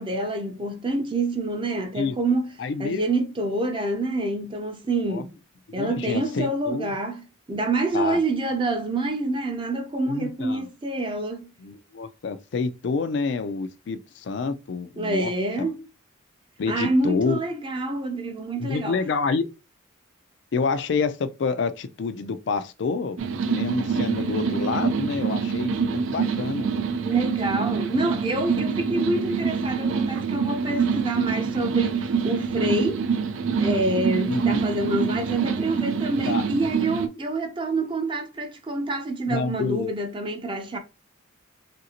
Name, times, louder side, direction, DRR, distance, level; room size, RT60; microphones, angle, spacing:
voice 1, 0.0-2.5 2.8-5.3 5.7-11.5 15.0-15.9 16.7-19.0 27.0-33.1 33.6-40.8, right 2 dB, 25° right, 0.5 m, -27 dB
voice 2, 2.6-3.0 5.1-5.2 5.8-6.9 7.9-8.2 10.1-10.7 11.6-15.3 15.6-15.7 16.6-17.4 18.6-19.5 20.5-23.2 23.5-26.7 34.3-34.6 36.3-36.5 39.3-39.9, left 4 dB, 60° left, 0.3 m, -28 dB
sound 1, 23.2-37.1, right 5 dB, 85° right, 0.4 m, -26 dB
3.1 x 2.5 x 2.8 m
head